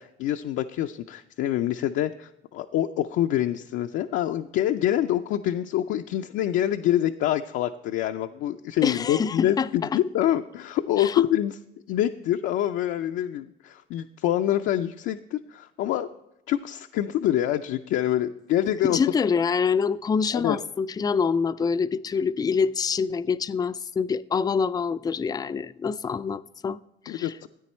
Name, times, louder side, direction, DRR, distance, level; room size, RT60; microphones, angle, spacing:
voice 1, 0.0-11.6 11.9-16.1 16.5-19.0 20.3-20.6 27.1-27.5, left 12 dB, 75° left, 0.5 m, -26 dB
voice 2, 8.8-9.9 11.0-11.2 18.8-27.3, left 5 dB, 20° left, 0.3 m, -26 dB
13.5 x 9.0 x 4.3 m
cardioid pair, 100°, 20 cm